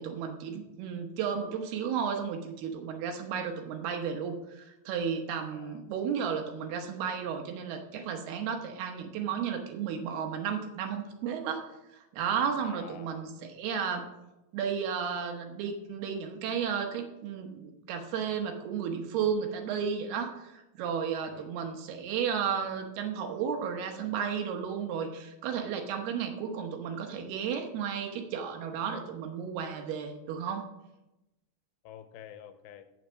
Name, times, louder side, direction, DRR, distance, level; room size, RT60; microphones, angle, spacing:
voice 1, 0.0-11.7 11.9-14.0 14.5-30.6, right 7 dB, 75° right, 4 dB, 2.8 m, -33 dB
voice 2, 5.5-5.8 12.6-13.2 21.2-21.6 31.8-32.8, left 9 dB, 85° left, 9 dB, 2.8 m, -49 dB
8.6 x 7.9 x 6.2 m, 0.95 s
omnidirectional pair, 5.0 m